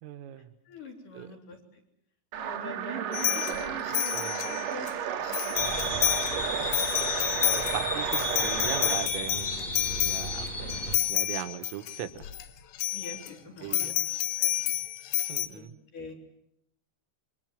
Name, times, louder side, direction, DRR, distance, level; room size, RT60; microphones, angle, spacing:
voice 1, 0.0-0.5 1.2-1.3 4.1-4.4 6.4-6.7 7.0-12.3 13.6-13.9 15.3-15.7, right 12 dB, 85° right, 10 dB, 3.8 m, -40 dB
voice 2, 0.6-1.8 2.4-4.9 5.3-5.9 12.9-13.9 14.4-14.5 15.5-15.7 15.9-16.1, left 3 dB, 45° left, 3 dB, 4.9 m, -44 dB
sound 1, 2.3-9.1, right 9 dB, 60° right, 2.3 m, -33 dB
sound 2, 3.1-4.9 5.3-6.4 6.6-12.4 12.8-13.3 13.7-15.5, left 13 dB, 90° left, 4.0 m, -29 dB
sound 3, 5.5-11.0, left 1 dB, 30° left, 3.2 m, -34 dB
28.0 x 24.5 x 7.5 m, 0.81 s
omnidirectional pair, 5.7 m